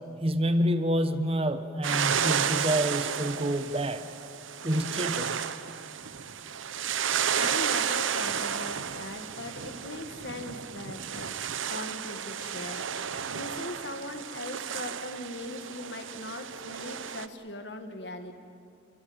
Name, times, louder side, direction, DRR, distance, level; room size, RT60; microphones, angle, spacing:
voice 1, 0.2-4.0 4.6-5.4, equal, 30° right, 10 dB, 1.1 m, -27 dB
sound 1, 1.8-17.3, right 8 dB, 85° right, 0.9 m, -32 dB
voice 2, 7.3-11.3 11.7-18.3, left 1 dB, 60° left, 7 dB, 1.9 m, -40 dB
28.5 x 22.5 x 8.9 m, 2.5 s
head